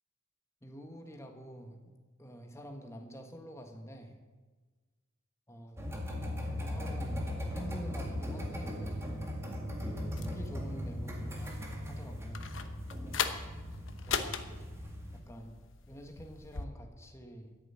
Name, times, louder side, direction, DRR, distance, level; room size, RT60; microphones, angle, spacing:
voice 1, 0.6-1.8 2.2-4.2 5.5-5.8 6.6-9.4 9.8-12.5 14.0-14.7 15.1-15.6 15.9-17.5, equal, 15° left, 4 dB, 1.5 m, -47 dB
sound 1, 5.8-15.2, left 1 dB, 15° right, 1.9 m, -38 dB
sound 2, 10.2-16.7, left 6 dB, 65° left, 1.0 m, -40 dB
13.5 x 7.1 x 9.3 m, 1.4 s
head